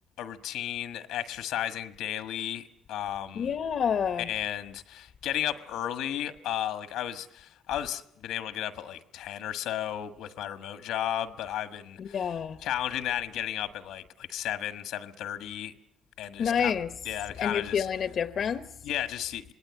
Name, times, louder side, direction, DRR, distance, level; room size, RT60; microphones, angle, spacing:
voice 1, 0.2-3.5 4.2-12.3 12.6-15.7 16.2-16.7 17.0-17.9 18.8-19.4, left 11 dB, 90° left, 1.5 m, -34 dB
voice 2, 3.3-4.3 12.0-12.6 16.4-16.9 17.4-18.6, left 7 dB, 60° left, 0.9 m, -28 dB
26.5 x 19.5 x 8.7 m
cardioid pair, 90°, 0 cm